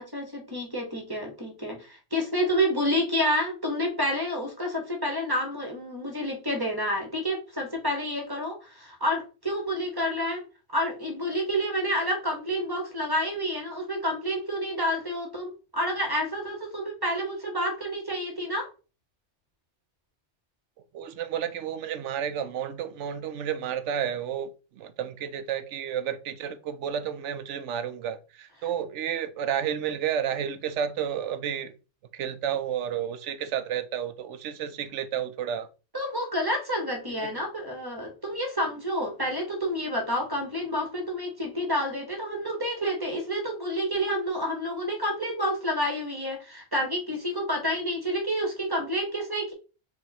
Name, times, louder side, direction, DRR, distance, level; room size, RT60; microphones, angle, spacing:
voice 1, 0.0-10.4 10.7-18.7 35.9-49.5, equal, 20° right, 1.3 m, -29 dB
voice 2, 20.9-31.7 32.1-35.7 37.2-37.3, right 9 dB, 80° right, 0.9 m, -31 dB
4.9 x 2.6 x 4.2 m
omnidirectional pair, 1.2 m